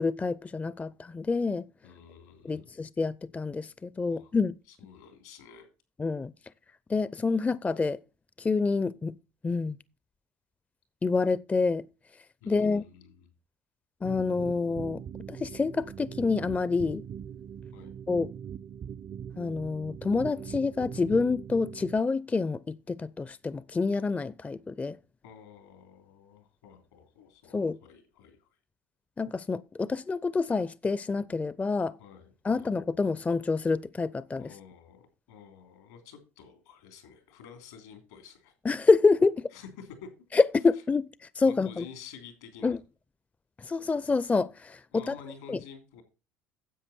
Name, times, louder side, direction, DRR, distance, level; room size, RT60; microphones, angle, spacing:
voice 1, 0.0-1.6 2.4-4.6 6.0-6.3 6.9-8.0 8.4-9.2 9.4-9.8 11.0-11.9 12.5-12.8 14.0-15.0 15.3-17.0 18.1-18.3 19.4-25.0 27.5-27.8 29.2-32.0 32.4-34.5 38.6-39.5 40.3-41.1 41.4-41.8 42.6-42.8 43.6-45.1 45.5-45.6, left 4 dB, 20° left, 0.4 m, -27 dB
voice 2, 1.8-2.7 4.1-4.3 4.7-5.7 12.4-13.3 17.7-18.0 25.2-28.5 32.0-32.7 34.4-38.5 39.5-40.1 41.4-42.8 44.9-46.0, left 7 dB, 85° left, 3.2 m, -50 dB
sound 1, 14.0-22.0, right 8 dB, 40° right, 0.5 m, -42 dB
10.0 x 7.8 x 4.3 m
hypercardioid pair, 70°, 8 cm